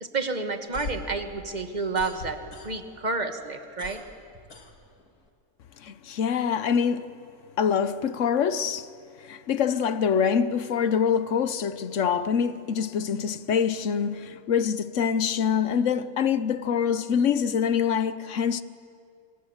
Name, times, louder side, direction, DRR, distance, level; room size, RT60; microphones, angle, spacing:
voice 1, 0.0-2.4 2.6-4.0, right 3 dB, 30° right, 1.7 m, -30 dB
sound 1, 0.5-3.1 3.4-5.3, left 2 dB, 85° left, 2.6 m, -41 dB
voice 2, 5.8-7.1 7.6-8.9 9.2-18.6, left 7 dB, 60° left, 1.1 m, -25 dB
26.0 x 25.5 x 7.3 m
omnidirectional pair, 1.5 m